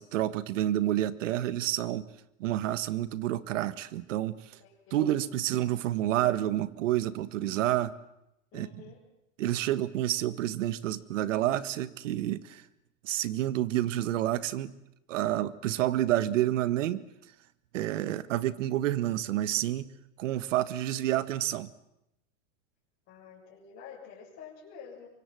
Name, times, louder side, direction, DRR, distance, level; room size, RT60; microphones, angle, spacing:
voice 1, 0.0-2.0 2.4-4.6 4.9-8.0 8.5-8.9 9.4-12.6 13.0-14.7 15.1-17.0 17.7-19.9 20.2-21.7, right 13 dB, 75° right, 15 dB, 1.6 m, -29 dB
voice 2, 4.6-5.0 8.5-9.0 23.1-25.1, left 7 dB, 35° left, -7 dB, 7.6 m, -48 dB
24.5 x 24.5 x 7.8 m, 0.83 s
supercardioid pair, 150°, 37 cm